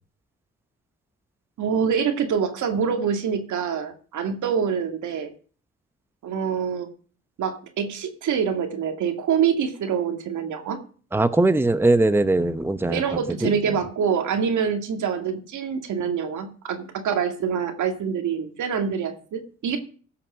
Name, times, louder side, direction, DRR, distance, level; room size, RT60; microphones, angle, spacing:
voice 1, 1.6-5.3 6.2-6.9 7.4-10.8 12.9-19.8, right 7 dB, 75° right, 2.1 m, -25 dB
voice 2, 11.1-13.5, right 2 dB, 10° right, 0.9 m, -21 dB
16.0 x 5.9 x 6.3 m
cardioid pair, 75°, 30 cm